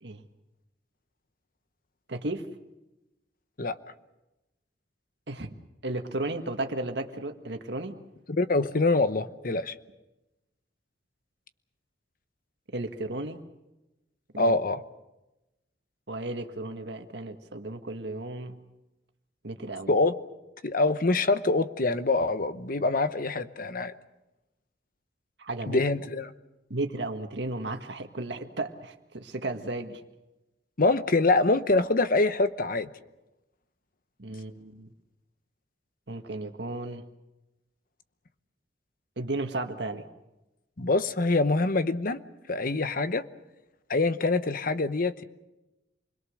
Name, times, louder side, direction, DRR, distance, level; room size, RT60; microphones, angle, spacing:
voice 1, 2.1-2.5 5.3-5.5 5.8-8.0 12.7-13.4 14.3-14.5 16.1-18.6 19.4-20.0 25.4-25.8 26.7-30.0 34.2-34.9 36.1-37.0 39.2-40.1, right 2 dB, 70° right, 6 dB, 1.7 m, -34 dB
voice 2, 8.3-9.7 14.4-14.8 19.9-20.1 20.6-23.9 25.7-26.3 30.8-32.9 40.8-42.2 42.5-43.3 43.9-45.2, left 3 dB, 55° left, 12 dB, 1.0 m, -25 dB
28.0 x 21.5 x 6.5 m, 0.99 s
head